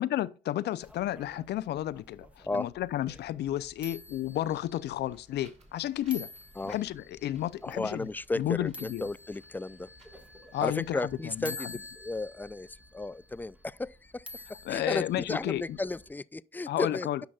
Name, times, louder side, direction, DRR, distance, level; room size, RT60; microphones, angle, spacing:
voice 1, 0.0-6.3 6.6-8.1 8.4-9.0 10.5-11.5 14.7-15.8 16.7-17.2, left 13 dB, 65° left, 0.5 m, -32 dB
sound 1, 0.8-16.1, left 2 dB, 5° right, 1.2 m, -49 dB
Wind, 5.0-11.4, right 2 dB, 35° right, 3.2 m, -60 dB
voice 2, 7.6-9.9 10.6-17.1, left 2 dB, 10° left, 0.3 m, -34 dB
10.0 x 5.8 x 2.3 m
hypercardioid pair, 50°, 19 cm